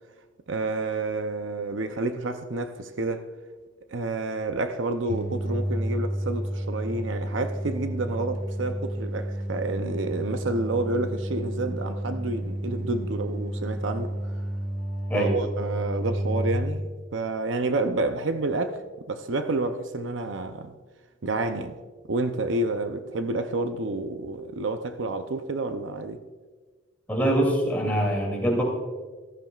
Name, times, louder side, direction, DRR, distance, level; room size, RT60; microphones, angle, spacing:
voice 1, 0.5-3.3 3.9-14.3 15.1-18.8 19.1-20.7 21.2-21.8 22.1-26.2, right 2 dB, 65° right, 0.6 m, -29 dB
sound 1, 5.1-16.5, right 1 dB, 40° right, 1.5 m, -31 dB
voice 2, 27.1-28.6, right 1 dB, 10° left, 2.7 m, -24 dB
14.5 x 13.5 x 2.4 m
head